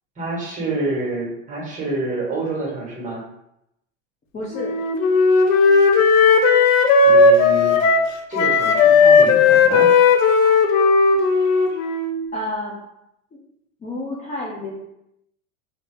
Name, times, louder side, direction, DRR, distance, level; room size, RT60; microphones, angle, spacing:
voice 1, 0.2-3.2 7.0-7.8 8.3-9.9, right 2 dB, 20° right, -3 dB, 1.5 m, -27 dB
voice 2, 4.3-4.7 12.3-12.7 13.3-13.4 13.8-14.7, left 1 dB, 20° left, -5 dB, 0.6 m, -29 dB
Wind instrument woodwind instrument, 4.5-8.1 8.3-12.2, left 4 dB, 75° left, 0.6 m, -15 dB
2.9 x 2.6 x 3.4 m, 0.81 s
hypercardioid pair, 105°, 39 cm